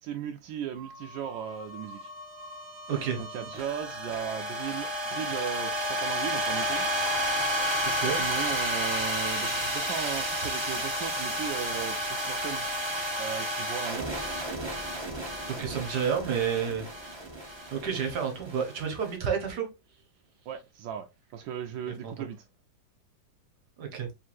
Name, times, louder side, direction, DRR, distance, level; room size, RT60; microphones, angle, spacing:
voice 1, 0.0-2.1 3.2-6.9 8.0-12.6 13.2-14.1 20.5-22.4, right 9 dB, 75° right, 1.2 m, -37 dB
sound 1, 0.7-19.1, equal, 25° right, 0.6 m, -32 dB
voice 2, 2.9-3.2 7.9-8.2 12.4-12.5 15.6-16.9 17.7-19.7 21.9-22.2 23.8-24.1, right 7 dB, 60° right, 1.6 m, -30 dB
4.5 x 3.7 x 2.5 m
omnidirectional pair, 2.1 m